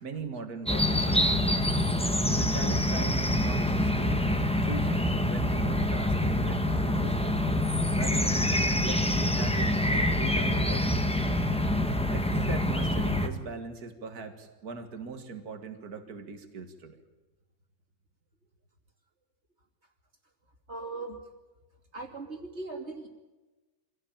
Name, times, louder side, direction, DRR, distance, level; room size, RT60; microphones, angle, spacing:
voice 1, 0.0-1.6 2.2-4.2 4.6-7.6 8.0-8.5 8.8-11.1 12.1-17.0, right 5 dB, 70° right, 7 dB, 2.2 m, -40 dB
sound 1, 0.7-13.3, left 1 dB, 5° left, 1.2 m, -26 dB
voice 2, 20.7-21.2 21.9-23.1, right 3 dB, 40° right, 2 dB, 3.3 m, -38 dB
25.0 x 17.0 x 8.9 m, 1.2 s
omnidirectional pair, 1.7 m